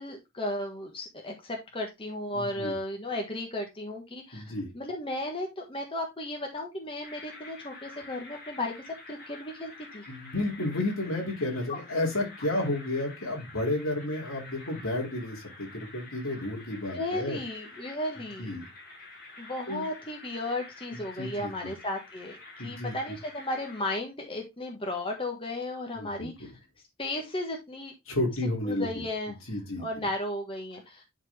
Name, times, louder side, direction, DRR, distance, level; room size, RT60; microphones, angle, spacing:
voice 1, 0.0-4.4 4.7-10.0 11.7-11.8 16.9-18.6 19.4-26.5 27.0-27.9 28.6-29.4 29.8-31.0, left 1 dB, 25° left, 1 dB, 1.5 m, -35 dB
voice 2, 2.3-2.7 4.3-4.7 10.1-17.4 18.4-18.7 19.7-19.8 21.2-21.7 22.6-22.9 25.9-26.5 28.1-28.9 29.5-30.0, left 1 dB, 65° left, -1 dB, 2.7 m, -32 dB
sound 1, 7.0-23.9, left 3 dB, 40° left, 2.7 m, -48 dB
11.0 x 4.3 x 3.4 m, 0.21 s
head